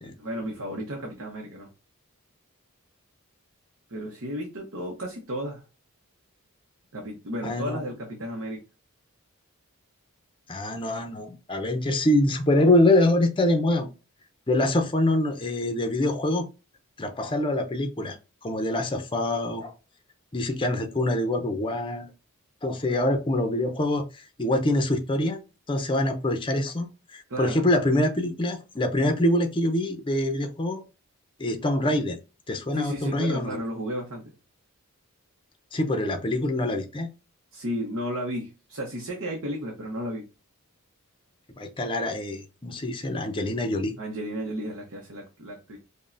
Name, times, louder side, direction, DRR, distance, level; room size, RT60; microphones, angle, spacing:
voice 1, 0.2-1.7 3.9-5.6 6.9-8.6 27.3-27.7 32.7-34.3 37.5-40.2 44.0-45.8, equal, 65° right, 0.9 m, -33 dB
voice 2, 7.4-7.8 10.5-13.9 14.5-16.5 17.0-18.2 18.4-19.7 20.3-22.1 22.6-24.0 24.4-25.4 25.7-26.9 27.1-30.8 31.4-32.2 32.5-33.6 35.7-37.1 41.6-43.9, left 1 dB, 25° left, 0.6 m, -25 dB
5.2 x 2.2 x 2.6 m
head